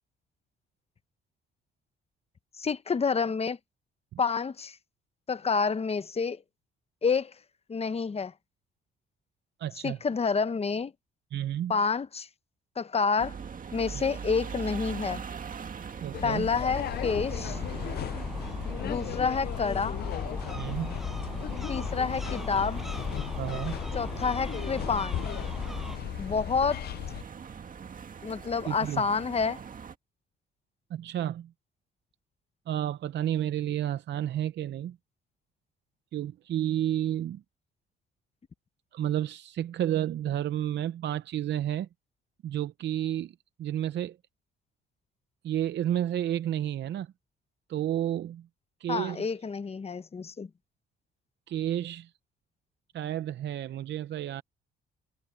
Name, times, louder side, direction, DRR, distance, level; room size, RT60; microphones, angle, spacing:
voice 1, 2.6-3.6 4.2-4.8 5.3-6.4 7.0-7.3 7.7-8.3 9.8-10.9 11.7-12.3 12.8-13.4 13.7-15.2 16.2-17.6 18.8-20.0 21.7-22.8 23.9-25.3 26.2-26.8 28.2-29.6 48.9-50.5, left 5 dB, 30° left, 1.0 m, -28 dB
voice 2, 9.6-10.0 11.3-11.7 13.9-14.0 16.0-16.5 20.5-21.0 23.4-23.8 28.7-29.0 30.9-31.5 32.7-35.0 36.1-37.4 38.9-41.9 42.4-43.3 43.6-44.2 45.4-47.1 47.7-48.5 48.8-49.3 51.5-52.1 52.9-54.4, right 11 dB, 65° right, 0.7 m, -31 dB
sound 1, 13.2-29.9, right 6 dB, 45° right, 2.0 m, -42 dB
sound 2, 16.1-27.2, left 12 dB, 55° left, 0.4 m, -36 dB
Gull seagull, 16.5-26.0, equal, ahead, 6.8 m, -39 dB
cardioid pair, 90°, 20 cm